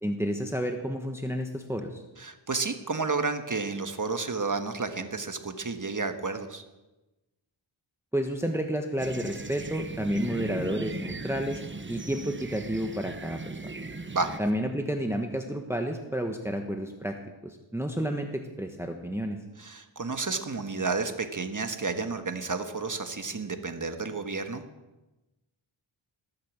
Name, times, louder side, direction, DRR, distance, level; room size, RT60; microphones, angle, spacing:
voice 1, 0.0-2.0 8.1-11.6 11.9-13.6 14.4-17.2 17.4-19.4, equal, 5° right, 4 dB, 1.4 m, -30 dB
voice 2, 2.2-6.6 14.1-14.3 19.6-24.6, right 4 dB, 40° right, 7 dB, 1.5 m, -31 dB
sound 1, 9.0-14.4, right 3 dB, 25° right, 1.0 m, -38 dB
20.0 x 8.6 x 7.4 m, 1.1 s
wide cardioid pair, 70°, 48 cm